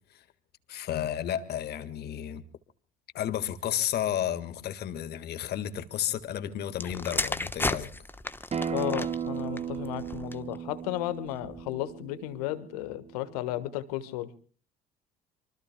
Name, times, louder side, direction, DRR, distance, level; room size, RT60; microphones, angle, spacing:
voice 1, 0.7-2.4 3.1-7.9, left 10 dB, 55° left, 11 dB, 1.7 m, -32 dB
sound 1, 6.7-10.6 11.3-11.6, left 2 dB, 10° left, 1.1 m, -34 dB
Acoustic guitar, 8.5-13.7, right 7 dB, 35° right, 0.9 m, -36 dB
voice 2, 8.7-14.3, left 15 dB, 80° left, 12 dB, 1.4 m, -34 dB
26.5 x 24.0 x 2.2 m, 0.42 s
hypercardioid pair, 55°, 20 cm